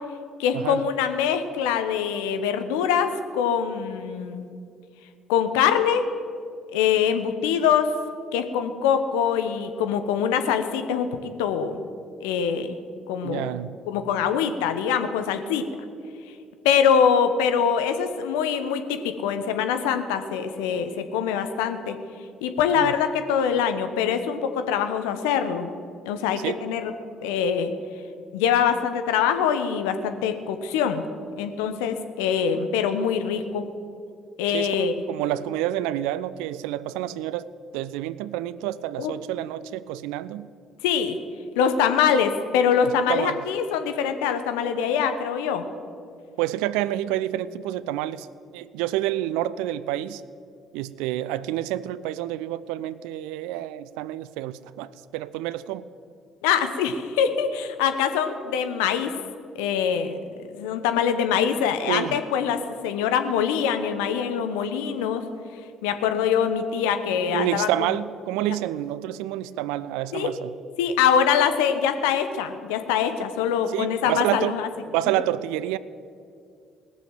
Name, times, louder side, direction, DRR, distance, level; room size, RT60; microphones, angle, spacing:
voice 1, 0.4-4.5 5.3-6.0 6.7-7.9 8.3-11.8 12.2-12.8 13.1-13.5 13.9-15.6 16.6-22.0 22.4-25.7 26.0-26.9 27.2-27.7 28.3-31.0 31.4-33.6 34.4-34.9 39.0-39.1 40.8-41.2 41.6-45.6 56.4-59.1 59.5-60.2 60.5-65.2 65.8-67.9 70.1-70.3 70.8-74.7, left 7 dB, 75° left, 8 dB, 1.0 m, -24 dB
voice 2, 13.2-13.7 22.7-22.9 26.4-26.6 34.5-37.5 37.7-40.5 43.1-43.4 46.4-48.3 48.5-50.2 50.7-55.8 61.9-62.2 67.3-70.5 73.7-74.6 74.9-75.8, right 13 dB, 75° right, 17 dB, 0.4 m, -28 dB
18.5 x 6.9 x 7.7 m, 2.3 s
hypercardioid pair, 55°, 0 cm